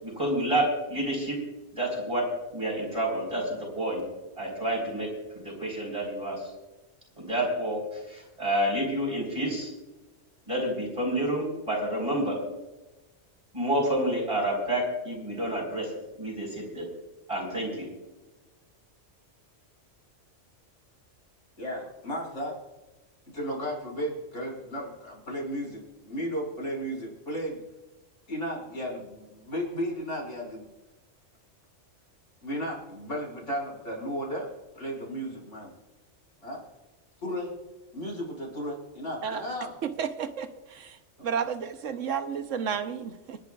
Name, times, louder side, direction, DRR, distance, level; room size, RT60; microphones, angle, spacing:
voice 1, 0.0-1.4 1.7-2.2 2.5-4.0 4.4-5.1 5.3-6.4 7.2-7.8 8.1-9.7 10.5-12.4 13.5-15.9 16.2-16.8 17.3-17.9, right 1 dB, 25° right, -1 dB, 4.6 m, -29 dB
voice 2, 21.6-22.5 23.3-27.6 28.3-30.7 32.4-34.5 34.7-35.7 36.4-36.6 37.2-37.5 37.9-39.7 41.2-41.3, equal, 75° left, -3 dB, 6.3 m, -34 dB
voice 3, 39.8-41.0 41.2-43.4, right 7 dB, 90° right, 9 dB, 1.3 m, -32 dB
29.0 x 10.5 x 2.4 m, 1.1 s
omnidirectional pair, 1.3 m